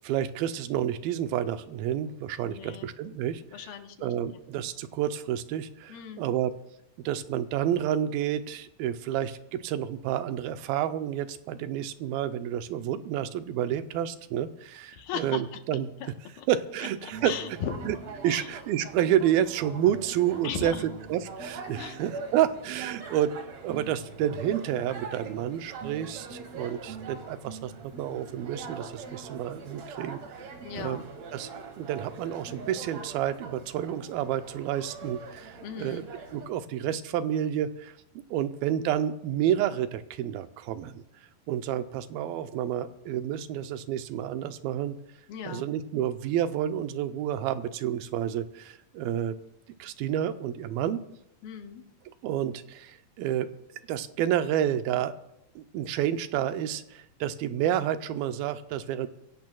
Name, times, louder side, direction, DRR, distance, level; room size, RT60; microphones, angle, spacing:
voice 1, 0.0-3.4 4.0-6.5 7.0-15.9 16.5-17.3 17.8-18.0 18.2-23.3 23.6-31.0 31.3-31.5 31.8-36.0 36.3-38.0 38.3-41.0 41.5-45.0 45.5-49.4 49.8-51.0 52.2-53.5 53.9-55.1 55.6-59.1, right 10 dB, 85° right, 10 dB, 2.4 m, -29 dB
voice 2, 2.4-2.9 3.5-4.4 5.9-6.4 14.9-15.6 16.0-16.5 16.8-17.9 18.3-18.6 20.4-20.8 21.8-22.0 30.6-31.1 35.6-36.1 45.3-45.7 51.4-51.8, left 7 dB, 80° left, 6 dB, 3.0 m, -38 dB
sound 1, 17.1-36.5, right 4 dB, 55° right, 2.5 m, -43 dB
23.5 x 16.5 x 2.3 m, 0.80 s
omnidirectional pair, 4.3 m